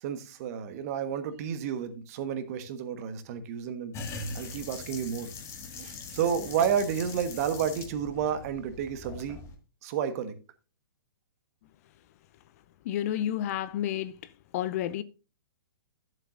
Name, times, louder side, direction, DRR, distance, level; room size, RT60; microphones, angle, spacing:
voice 1, 0.0-3.9 4.3-5.3 5.8-9.4 9.8-10.4, right 8 dB, 45° right, 1.3 m, -31 dB
sound 1, 3.9-9.6, left 3 dB, 25° left, 1.8 m, -41 dB
voice 2, 12.8-14.2 14.5-15.0, left 11 dB, 45° left, 0.6 m, -30 dB
12.0 x 7.5 x 2.5 m
figure-of-eight pair, 120°, 12 cm